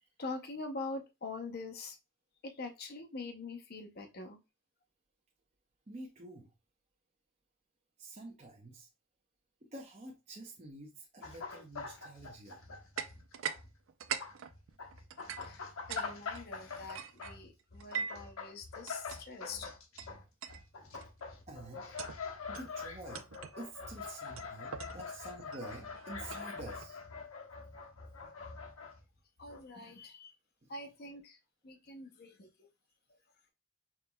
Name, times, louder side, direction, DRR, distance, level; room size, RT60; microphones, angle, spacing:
voice 1, 0.2-2.0 2.4-4.4 15.4-19.7 29.4-30.3 30.7-31.4 31.6-32.7, left 3 dB, 45° left, 0.7 m, -44 dB
voice 2, 5.9-6.5 8.0-8.9 9.6-12.6 21.5-21.8 22.5-23.3 23.6-27.0 30.6-30.7, right 2 dB, 30° right, 0.7 m, -48 dB
sound 1, 11.2-13.7 14.0-29.0 29.4-29.6, left 4 dB, 75° left, 1.0 m, -45 dB
sound 2, 13.0-13.6 13.9-16.1 16.3-18.3 18.9-19.2 20.0-20.1 20.4-20.6 20.9-21.2 21.8-22.2 22.5-22.7 23.1-23.6 24.4-26.9, right 7 dB, 65° right, 0.4 m, -42 dB
5.7 x 3.2 x 2.2 m
head